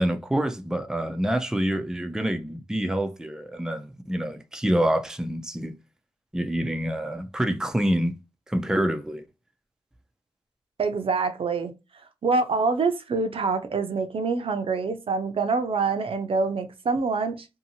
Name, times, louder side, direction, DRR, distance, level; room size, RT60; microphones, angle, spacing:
voice 1, 0.0-5.7 6.3-8.2 8.5-9.2, right 1 dB, 5° right, 0.5 m, -26 dB
voice 2, 10.8-11.7 12.2-17.5, right 4 dB, 60° right, 0.6 m, -25 dB
2.7 x 2.6 x 2.7 m
cardioid pair, 50°, 10 cm